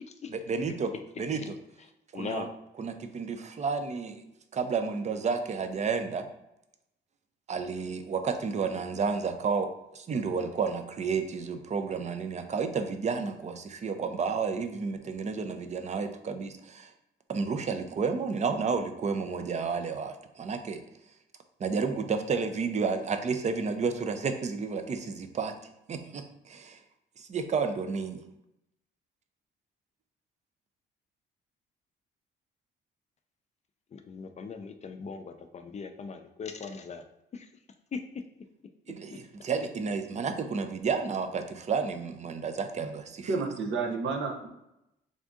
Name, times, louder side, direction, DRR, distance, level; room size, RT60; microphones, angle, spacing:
voice 1, 0.3-1.6 2.1-2.5 2.8-4.2 4.5-6.3 7.5-16.9 17.3-20.8 21.6-25.5 25.9-26.8 27.2-28.2 38.9-43.3, right 5 dB, 35° right, 7 dB, 0.5 m, -31 dB
voice 2, 2.1-2.5 33.9-37.0 37.3-37.5 37.9-38.0, left 5 dB, 35° left, 6 dB, 0.4 m, -39 dB
voice 3, 43.3-44.5, right 4 dB, 75° right, 1 dB, 0.7 m, -30 dB
3.5 x 2.5 x 3.6 m, 0.87 s
cardioid pair, 90°, 20 cm